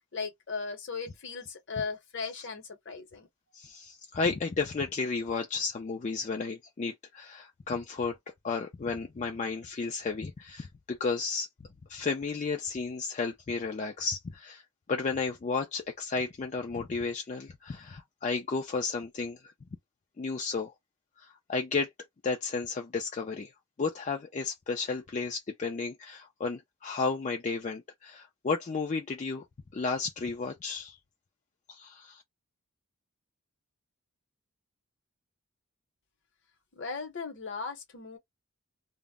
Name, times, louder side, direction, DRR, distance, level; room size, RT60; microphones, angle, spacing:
voice 1, 0.1-3.3 36.7-38.2, left 4 dB, 55° left, 0.8 m, -37 dB
voice 2, 3.5-8.2 8.4-11.5 11.9-14.6 14.9-19.5 20.2-20.7 21.2-21.9 22.2-23.5 23.8-29.4 29.7-31.0 31.7-32.2, left 4 dB, 30° left, 0.3 m, -33 dB
2.1 x 2.0 x 3.5 m
head